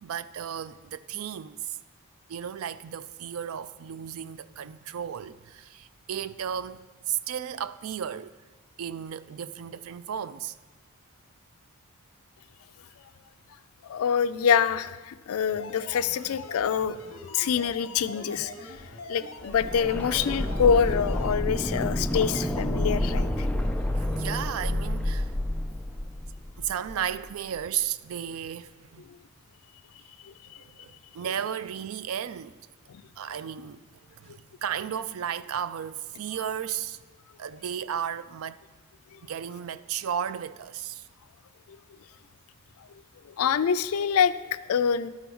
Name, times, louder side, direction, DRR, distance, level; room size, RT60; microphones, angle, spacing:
voice 1, 0.0-1.8 2.3-8.3 8.8-10.5 20.3-20.5 24.0-25.3 26.6-29.0 30.5-32.5 33.2-33.8 34.1-37.0 37.4-38.6 39.2-41.1, right 9 dB, 80° right, 0.4 m, -34 dB
voice 2, 13.8-16.9 17.3-18.5 19.1-23.5 30.2-30.3 32.9-33.0 34.3-34.4 39.1-39.2 41.7-41.8 43.4-45.1, left 7 dB, 85° left, 0.4 m, -25 dB
sound 1, 15.5-21.4, left 2 dB, 70° left, 0.9 m, -43 dB
sound 2, 19.5-27.3 27.6-27.7, left 1 dB, 5° left, 0.3 m, -29 dB
12.5 x 4.4 x 5.4 m
head